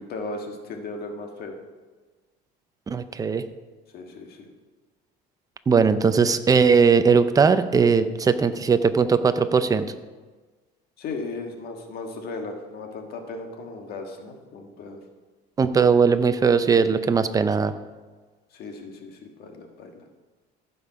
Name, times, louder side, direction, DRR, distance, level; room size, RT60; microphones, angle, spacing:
voice 1, 0.0-1.6 3.9-4.5 11.0-15.0 18.5-20.0, left 3 dB, 55° left, 3 dB, 1.6 m, -36 dB
voice 2, 2.9-3.4 5.7-9.9 15.6-17.7, right 5 dB, 20° right, 11 dB, 0.5 m, -19 dB
15.0 x 5.5 x 4.9 m, 1.3 s
cardioid pair, 130°, 19 cm